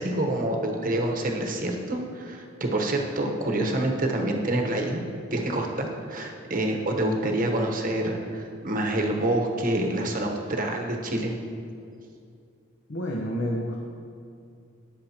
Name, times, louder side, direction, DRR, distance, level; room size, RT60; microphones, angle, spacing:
voice 1, 0.0-5.0 5.3-11.3, right 1 dB, 45° right, 2 dB, 1.1 m, -27 dB
voice 2, 12.9-13.8, equal, 60° left, -2 dB, 1.0 m, -29 dB
19.0 x 6.4 x 3.0 m, 2.4 s
head